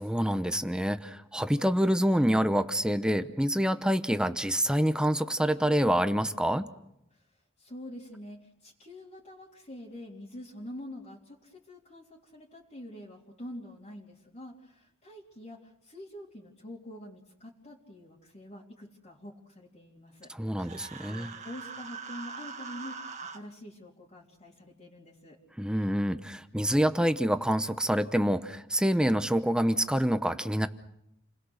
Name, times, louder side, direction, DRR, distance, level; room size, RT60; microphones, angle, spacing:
voice 1, 0.0-6.7 20.4-21.3 25.6-30.7, equal, 5° right, 10 dB, 0.9 m, -26 dB
voice 2, 7.6-20.3 20.6-20.8 21.1-25.4, left 1 dB, 35° left, -6 dB, 3.6 m, -46 dB
Human voice, 20.6-23.4, right 5 dB, 35° right, 1.7 m, -42 dB
29.5 x 21.0 x 6.5 m, 0.80 s
head